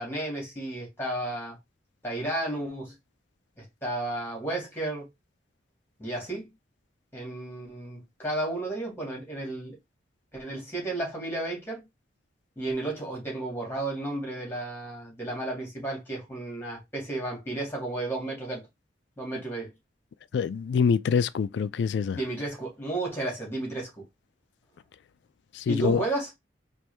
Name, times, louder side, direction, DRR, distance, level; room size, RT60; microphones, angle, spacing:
voice 1, 0.0-1.6 2.0-2.9 3.6-5.1 6.0-6.5 7.1-9.8 10.3-11.9 12.6-18.7 19.2-19.7 22.2-23.9 25.7-26.3, right 2 dB, 15° left, 2.2 m, -33 dB
voice 2, 20.3-22.2 25.5-26.0, left 6 dB, 70° left, 0.3 m, -25 dB
4.4 x 2.6 x 3.3 m
head